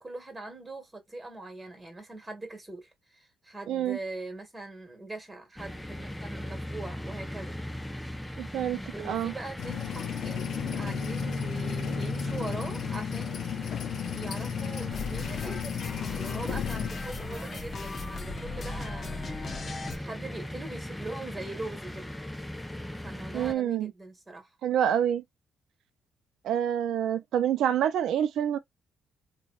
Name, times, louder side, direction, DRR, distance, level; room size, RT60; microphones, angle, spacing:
voice 1, 0.0-7.5 8.7-10.5 10.8-13.7 14.1-19.4 19.7-22.1 23.0-24.5, right 2 dB, 20° right, 1.6 m, -42 dB
voice 2, 3.7-4.0 8.4-8.8 9.1-9.3 23.3-23.9 24.6-25.2 26.4-28.6, right 10 dB, 80° right, 0.5 m, -27 dB
sound 1, 5.6-23.5, left 1 dB, 5° left, 0.6 m, -38 dB
sound 2, 9.6-16.9, left 10 dB, 70° left, 0.5 m, -34 dB
sound 3, 14.9-20.0, left 4 dB, 40° left, 0.8 m, -38 dB
3.2 x 2.3 x 2.4 m
cardioid pair, 90°, 0 cm